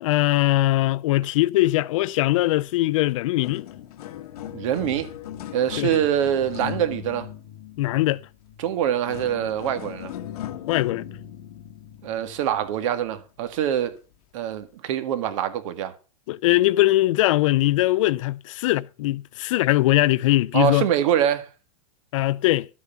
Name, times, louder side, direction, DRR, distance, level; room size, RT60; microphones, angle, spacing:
voice 1, 0.0-3.6 5.8-5.9 7.8-8.2 10.7-11.1 16.3-20.9 22.1-22.7, left 17 dB, 55° left, 0.5 m, -21 dB
sound 1, 2.8-3.0 3.2-12.9 13.6-13.8 14.5-14.6, left 10 dB, 80° left, 1.4 m, -38 dB
voice 2, 4.5-5.1 5.5-7.3 8.6-10.1 12.0-14.0 14.3-15.9 20.5-21.5, right 10 dB, 55° right, 1.9 m, -24 dB
12.5 x 8.3 x 5.7 m
supercardioid pair, 160°, 19 cm